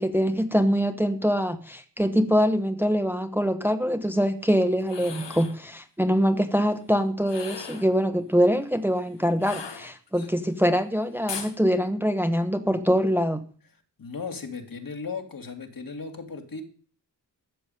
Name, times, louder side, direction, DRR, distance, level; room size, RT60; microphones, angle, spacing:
voice 1, 0.0-13.4, equal, 5° right, 7 dB, 1.0 m, -24 dB
sound 1, 4.8-5.6 7.2-7.9 9.4-10.3 11.3-11.6, left 6 dB, 85° left, 1.8 m, -38 dB
voice 2, 14.0-16.6, left 4 dB, 55° left, 4 dB, 2.4 m, -36 dB
13.5 x 7.1 x 9.1 m, 0.43 s
wide cardioid pair, 135°, 41 cm